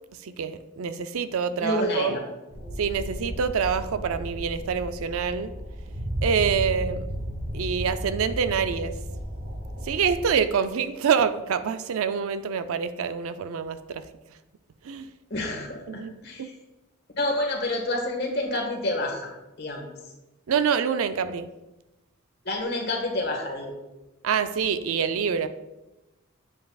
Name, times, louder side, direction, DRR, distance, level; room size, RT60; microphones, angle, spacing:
voice 1, 0.2-2.2 2.8-5.5 6.2-7.1 7.5-8.9 9.8-14.0 14.8-15.1 15.9-16.5 20.5-21.5 24.2-25.5, right 6 dB, 80° right, 11 dB, 0.4 m, -26 dB
voice 2, 1.6-2.2 15.3-16.5 17.2-19.3 19.6-19.9 22.4-23.7, left 1 dB, 50° left, 1 dB, 1.5 m, -28 dB
sound 1, 2.5-10.4, equal, 45° right, 1.0 m, -34 dB
7.6 x 7.5 x 2.3 m, 1.0 s
head